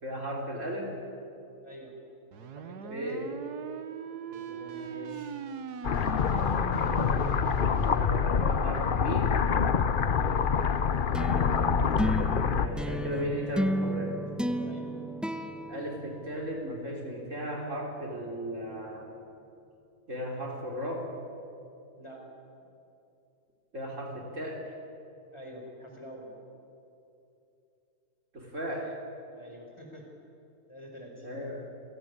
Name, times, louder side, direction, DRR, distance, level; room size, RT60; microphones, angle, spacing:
voice 1, 0.0-1.0 2.9-3.3 4.3-5.3 6.3-7.2 7.9-9.4 12.5-14.2 15.7-19.1 20.1-21.1 23.7-24.8 28.3-29.0 31.2-31.7, equal, 50° right, 0 dB, 4.1 m, -36 dB
sound 1, 2.3-8.3, right 7 dB, 85° right, 1.6 m, -39 dB
voice 2, 2.5-3.0 10.5-10.7 14.6-14.9 22.0-22.3 25.3-26.3 29.3-30.1 30.7-31.3, equal, 15° left, 0 dB, 4.8 m, -47 dB
sound 2, 5.8-12.7, left 6 dB, 45° left, 0.7 m, -26 dB
sound 3, 11.1-16.7, right 1 dB, ahead, 0.8 m, -33 dB
29.0 x 17.5 x 9.7 m, 2.7 s
omnidirectional pair, 1.7 m